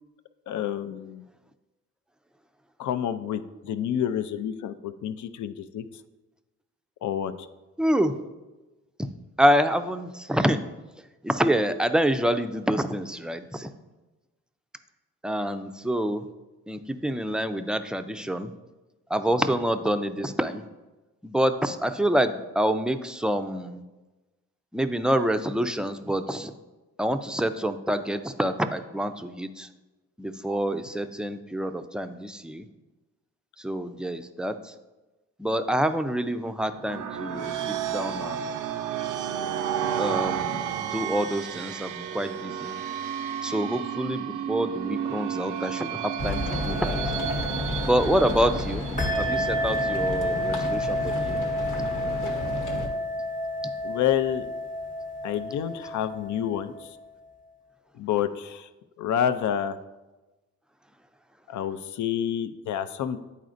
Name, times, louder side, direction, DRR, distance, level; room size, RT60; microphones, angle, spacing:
voice 1, 0.5-1.2 2.8-5.8 7.0-7.5 51.6-51.7 53.8-54.5 55.2-56.9 58.0-58.7 59.0-59.8 61.5-63.2, left 9 dB, 70° left, 11 dB, 0.5 m, -28 dB
voice 2, 7.8-8.2 9.4-10.6 11.2-13.7 15.2-16.3 16.7-18.5 19.1-20.6 21.2-23.8 24.7-26.5 27.0-29.7 30.2-32.7 33.6-34.7 35.4-38.6 40.0-42.8 43.4-47.2 47.8-48.9 49.1-51.4, equal, 5° right, 8 dB, 0.4 m, -27 dB
sound 1, 36.7-49.2, right 9 dB, 75° right, 0.5 m, -32 dB
sound 2, 46.2-52.9, left 1 dB, 85° left, 1.1 m, -31 dB
sound 3, 49.0-57.1, left 1 dB, 25° left, 1.0 m, -30 dB
9.1 x 4.1 x 2.5 m, 1.1 s
supercardioid pair, 65°, 31 cm